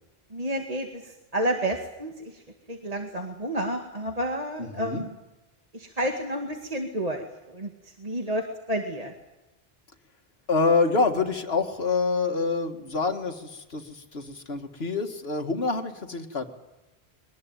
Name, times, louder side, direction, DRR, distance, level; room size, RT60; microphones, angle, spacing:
voice 1, 0.3-2.4 2.7-5.2 5.7-9.1, right 1 dB, 35° right, 3 dB, 2.2 m, -30 dB
voice 2, 4.6-5.0 10.5-16.5, left 4 dB, 70° left, 5 dB, 2.2 m, -26 dB
23.0 x 20.0 x 9.2 m, 1.0 s
omnidirectional pair, 1.1 m